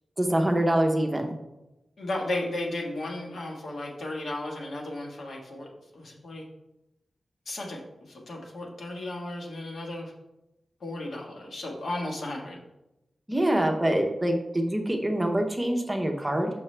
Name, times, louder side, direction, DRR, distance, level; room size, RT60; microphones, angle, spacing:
voice 1, 0.2-1.4 13.3-16.5, right 1 dB, 10° right, 3 dB, 0.7 m, -25 dB
voice 2, 2.0-5.7 5.9-6.4 7.4-7.8 8.1-10.1 10.8-12.6, left 1 dB, 70° left, -1 dB, 1.3 m, -34 dB
6.1 x 5.8 x 3.2 m, 0.94 s
wide cardioid pair, 140°, 0 cm